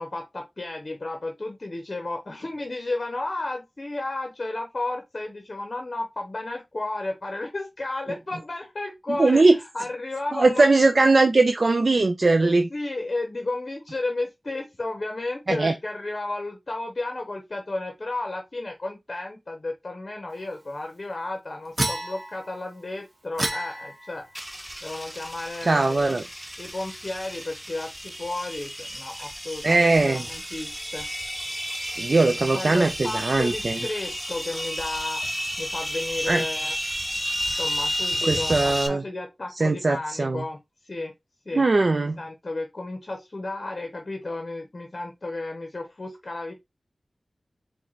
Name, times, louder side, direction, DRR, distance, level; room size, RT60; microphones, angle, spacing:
voice 1, 0.0-10.7 12.4-26.1 26.6-31.1 32.5-36.7 37.5-40.6 40.8-41.1 41.5-41.7 42.2-46.5, left 2 dB, 45° left, 0.7 m, -33 dB
voice 2, 9.1-9.6 10.3-12.7 15.5-15.7 25.7-26.2 29.6-30.2 32.0-33.8 36.3-36.4 38.2-39.0 39.6-40.4 41.5-42.2, right 3 dB, 55° right, 0.5 m, -20 dB
sound 1, 21.8-22.6 23.4-24.3, right 1 dB, 40° right, 1.0 m, -30 dB
sound 2, 24.3-38.9, equal, 5° right, 0.7 m, -32 dB
4.4 x 2.2 x 3.9 m
wide cardioid pair, 75°, 0 cm